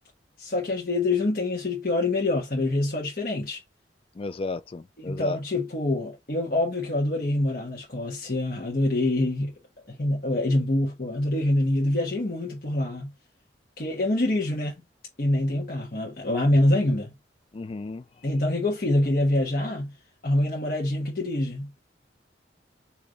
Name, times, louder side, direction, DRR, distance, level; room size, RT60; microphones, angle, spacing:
voice 1, 0.4-3.6 5.0-9.5 9.9-13.1 13.8-14.7 15.2-17.1 18.2-19.9 20.2-21.8, left 1 dB, 55° left, 1.3 m, -25 dB
voice 2, 4.2-5.4 17.5-18.0, left 3 dB, 30° left, 0.3 m, -34 dB
3.4 x 2.9 x 3.8 m
head